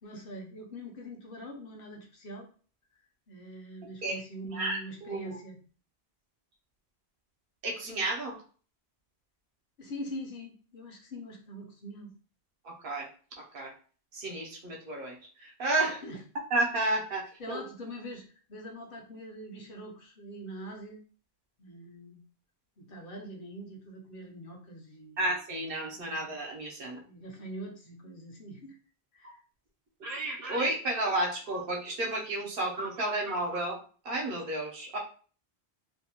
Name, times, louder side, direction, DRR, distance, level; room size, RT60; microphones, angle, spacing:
voice 1, 0.0-2.5 3.3-5.6 9.8-12.1 15.8-16.2 17.4-21.0 21.6-22.2 22.8-25.2 25.9-26.3 26.8-28.8 29.1-29.4, equal, 65° left, 1 dB, 0.8 m, -43 dB
voice 2, 4.5-5.4 7.6-8.4 12.6-13.1 13.4-13.7 14.1-16.0 16.5-17.6 25.2-27.0 29.2-29.3 30.0-33.8 34.0-35.0, right 2 dB, 65° right, -1 dB, 0.8 m, -32 dB
2.5 x 2.1 x 2.8 m, 0.41 s
omnidirectional pair, 1.1 m